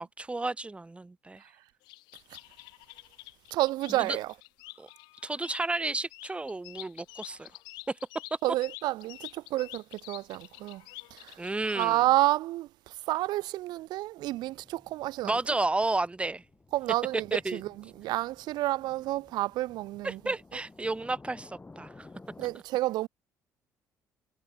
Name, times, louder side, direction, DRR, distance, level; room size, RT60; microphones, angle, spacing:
voice 1, 0.0-1.4 4.0-4.2 4.8-4.9 5.2-7.5 7.9-8.0 11.4-12.0 15.2-16.4 17.3-17.6 20.0-22.1, right 2 dB, 15° right, 0.6 m, -32 dB
sound 1, 1.8-11.9, left 23 dB, 75° left, 3.2 m, -48 dB
voice 2, 3.5-4.3 8.4-10.8 11.1-11.4 11.7-15.3 16.7-20.2 22.4-23.1, right 16 dB, 70° right, 0.4 m, -30 dB
sound 2, 14.2-22.6, left 3 dB, 20° left, 3.0 m, -54 dB
hypercardioid pair, 55°, 8 cm